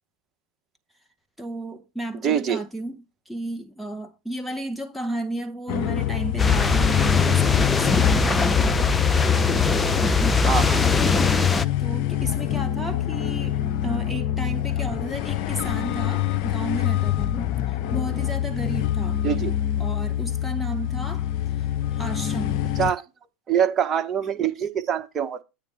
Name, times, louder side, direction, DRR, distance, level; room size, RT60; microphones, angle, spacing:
voice 1, 1.4-8.8 9.9-10.4 11.1-11.4 11.8-19.2 19.8-21.3 21.9-22.7, right 1 dB, ahead, 1.5 m, -33 dB
voice 2, 2.2-2.6 10.5-10.8 19.2-19.6 22.8-23.0 23.5-25.4, right 8 dB, 30° right, 1.3 m, -24 dB
sound 1, 5.7-22.9, left 12 dB, 55° left, 0.7 m, -26 dB
sound 2, 6.4-11.7, left 4 dB, 15° left, 0.6 m, -21 dB
9.0 x 3.4 x 6.7 m
hypercardioid pair, 90°, 0 cm